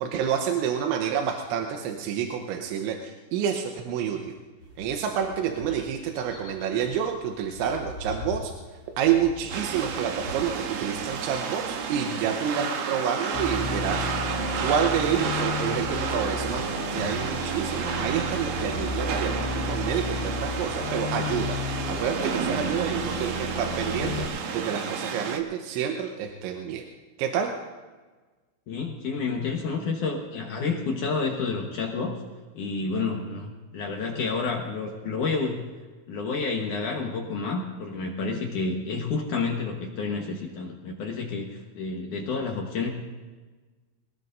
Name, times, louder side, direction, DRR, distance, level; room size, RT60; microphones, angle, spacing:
voice 1, 0.0-4.4 4.8-8.5 9.0-14.1 14.6-26.9 27.2-27.5, right 8 dB, 90° right, 3 dB, 3.3 m, -28 dB
sound 1, 4.6-14.2, left 2 dB, 30° left, 2.5 m, -44 dB
sound 2, 9.5-25.4, right 6 dB, 70° right, 2.4 m, -31 dB
sound 3, 13.3-24.2, left 3 dB, 90° left, 3.7 m, -33 dB
voice 2, 28.7-32.2 32.6-35.6 36.1-42.9, left 4 dB, 75° left, 0 dB, 1.9 m, -29 dB
23.5 x 19.0 x 2.6 m, 1.3 s
omnidirectional pair, 5.4 m